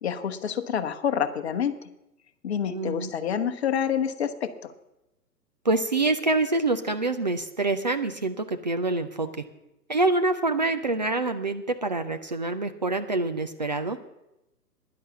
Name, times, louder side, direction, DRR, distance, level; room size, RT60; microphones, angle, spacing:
voice 1, 0.0-1.9 2.4-4.7, left 8 dB, 40° left, 8 dB, 1.1 m, -28 dB
voice 2, 2.7-3.1 5.6-9.3 9.9-14.0, right 2 dB, 30° right, 8 dB, 0.5 m, -26 dB
10.5 x 10.5 x 7.1 m, 0.91 s
figure-of-eight pair, 125°, 49 cm